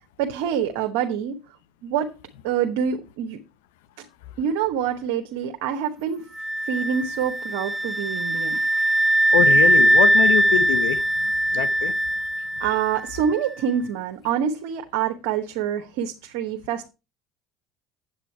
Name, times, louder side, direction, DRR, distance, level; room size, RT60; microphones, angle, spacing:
voice 1, 0.2-1.4 1.8-2.1 2.4-3.4 4.4-6.3 6.6-8.6 12.6-16.9, right 8 dB, 80° right, 1.1 m, -26 dB
sound 1, 6.4-13.2, right 1 dB, 5° right, 0.5 m, -21 dB
voice 2, 9.3-11.9, left 12 dB, 85° left, 0.7 m, -25 dB
9.0 x 8.0 x 4.5 m
supercardioid pair, 85°, 0 cm